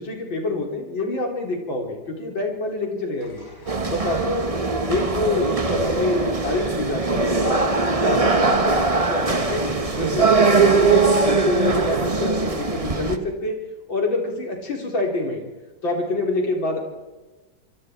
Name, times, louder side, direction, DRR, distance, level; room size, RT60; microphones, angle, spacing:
voice 1, 0.0-3.5 3.9-4.5 4.9-7.6 8.0-9.6 9.9-13.6 13.9-15.5 15.8-16.8, left 2 dB, 85° left, 1 dB, 5.0 m, -26 dB
sound 1, 3.2-10.8, left 1 dB, 60° left, 6.6 m, -45 dB
sound 2, 3.7-13.2, right 3 dB, 20° right, 1.1 m, -21 dB
26.0 x 24.5 x 4.7 m, 1.2 s
omnidirectional pair, 2.1 m